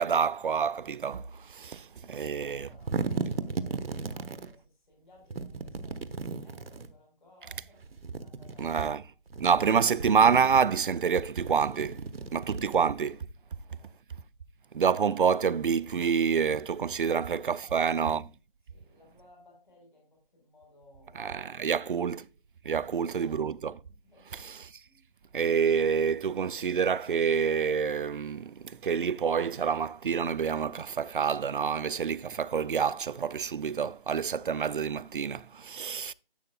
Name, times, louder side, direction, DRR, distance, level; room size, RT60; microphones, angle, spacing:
voice 1, 0.0-2.7 8.6-9.0 9.4-12.0 12.3-13.2 14.7-18.2 21.1-22.2 22.7-23.7 24.3-24.7 25.3-36.1, right 6 dB, 65° right, 0.4 m, -27 dB
voice 2, 2.0-9.1 13.7-14.0 16.9-18.1 18.7-21.4 21.6-21.8 22.8-23.4 24.0-24.5 24.8-25.0, left 2 dB, 55° left, 4.3 m, -59 dB
sound 1, 2.5-4.5 5.3-6.9 7.8-8.9 9.3-10.8 11.4-13.2, right 4 dB, 85° right, 0.9 m, -36 dB
11.5 x 7.6 x 2.2 m
hypercardioid pair, 175°, 29 cm